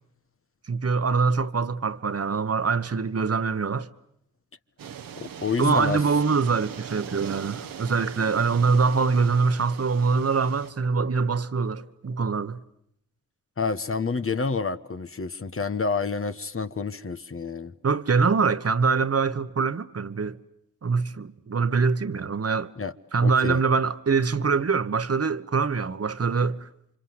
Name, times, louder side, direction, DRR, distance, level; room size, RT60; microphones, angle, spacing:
voice 1, 0.7-3.9 5.6-12.6 17.8-20.4 20.8-22.7 23.1-26.7, right 5 dB, 45° right, 1.3 m, -24 dB
sound 1, 4.8-10.7, right 8 dB, 85° right, 1.4 m, -40 dB
voice 2, 5.4-6.0 13.6-17.7 22.8-22.9 23.2-23.6, left 4 dB, 40° left, 1.3 m, -28 dB
28.5 x 25.0 x 8.0 m
supercardioid pair, 45°, 33 cm